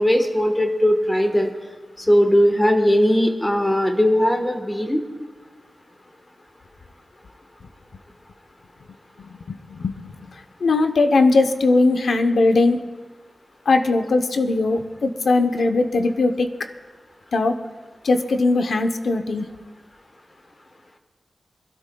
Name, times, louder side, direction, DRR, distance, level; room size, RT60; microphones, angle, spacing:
voice 1, 0.0-1.5 2.0-5.0, equal, 10° left, 4 dB, 1.2 m, -18 dB
voice 2, 9.2-9.9 10.6-12.8 13.7-16.5 17.3-17.6 18.0-19.5, left 3 dB, 65° left, 7 dB, 0.8 m, -19 dB
26.5 x 12.0 x 2.3 m, 1.3 s
wide cardioid pair, 170°, 0 cm